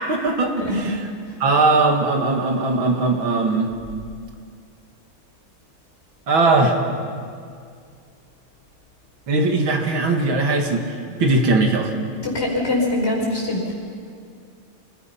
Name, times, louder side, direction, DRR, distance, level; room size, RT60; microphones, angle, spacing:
voice 1, 0.1-0.8 1.4-3.7 6.3-6.8 9.3-10.8 11.2-11.9, right 3 dB, 65° right, 3 dB, 2.7 m, -19 dB
voice 2, 0.6-0.9 1.3-1.4 12.2-13.7, left 2 dB, 30° left, -2 dB, 5.2 m, -23 dB
26.5 x 19.5 x 5.9 m, 2.2 s
omnidirectional pair, 2.4 m